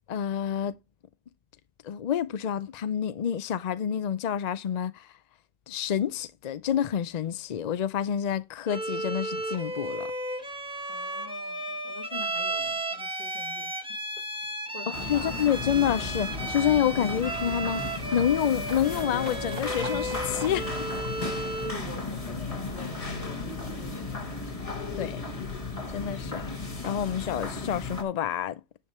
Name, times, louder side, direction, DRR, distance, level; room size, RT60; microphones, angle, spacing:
voice 1, 0.1-0.7 1.8-5.1 5.7-10.1 15.1-20.8 24.7-25.5 25.9-26.4 26.8-28.6, left 9 dB, 65° left, 0.4 m, -28 dB
Bowed string instrument, 8.7-21.8, right 1 dB, 5° right, 1.2 m, -34 dB
voice 2, 10.9-13.8 14.7-15.5 21.6-24.4, left 3 dB, 45° left, 2.1 m, -46 dB
Livestock farm animals working animals, 12.8-12.9 13.2-24.2 24.5-25.5 25.8-25.9, right 3 dB, 90° right, 2.5 m, -48 dB
sound 1, 14.9-28.0, left 3 dB, 30° left, 1.5 m, -35 dB
10.0 x 5.3 x 4.2 m
omnidirectional pair, 1.3 m